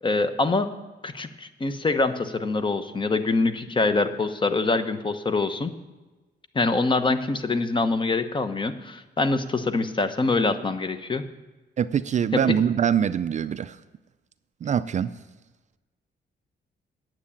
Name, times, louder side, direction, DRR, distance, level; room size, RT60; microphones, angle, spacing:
voice 1, 0.0-0.7 1.0-5.7 6.5-11.2, left 3 dB, 25° left, 9 dB, 0.9 m, -24 dB
voice 2, 11.8-13.8 14.6-15.1, right 8 dB, 40° right, 14 dB, 0.4 m, -24 dB
9.5 x 7.5 x 8.6 m, 1.2 s
cardioid pair, 105°, 18 cm